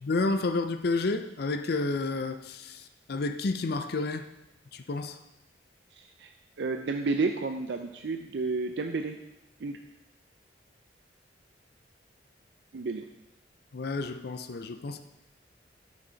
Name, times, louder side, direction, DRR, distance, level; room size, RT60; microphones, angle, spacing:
voice 1, 0.0-4.3 4.7-5.2 13.7-15.0, left 3 dB, 60° left, 9 dB, 0.5 m, -30 dB
voice 2, 5.9-6.3 6.6-9.2 9.6-9.8 12.7-13.0, right 3 dB, 70° right, 5 dB, 0.5 m, -31 dB
8.9 x 6.5 x 3.9 m, 0.91 s
head